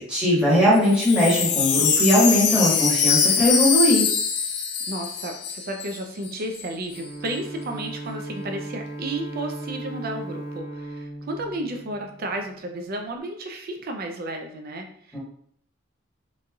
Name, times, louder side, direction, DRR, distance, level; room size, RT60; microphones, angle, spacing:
voice 1, 0.0-4.0, left 1 dB, 5° right, -8 dB, 1.1 m, -19 dB
Wind chime, 0.8-6.0 6.2-6.3 6.5-7.0, left 6 dB, 50° left, 0.4 m, -23 dB
voice 2, 4.9-15.2, right 1 dB, 45° right, 3 dB, 0.4 m, -33 dB
Bowed string instrument, 6.9-12.5, right 2 dB, 20° left, 0.7 m, -37 dB
3.1 x 2.6 x 2.3 m, 0.64 s
head